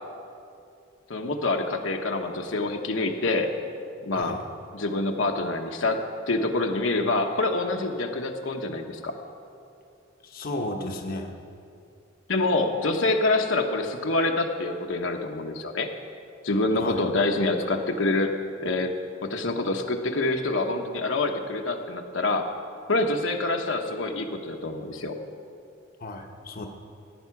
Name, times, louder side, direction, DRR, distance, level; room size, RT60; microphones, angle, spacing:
voice 1, 1.1-3.5 4.0-4.4 4.7-9.1 12.3-15.9 16.4-18.3 18.6-18.9 19.2-22.5 22.9-25.2, left 2 dB, 70° left, 3 dB, 1.1 m, -26 dB
voice 2, 10.2-11.3 16.7-17.0 26.0-26.7, left 1 dB, 50° left, 2 dB, 1.0 m, -33 dB
16.0 x 9.1 x 5.9 m, 2.5 s
head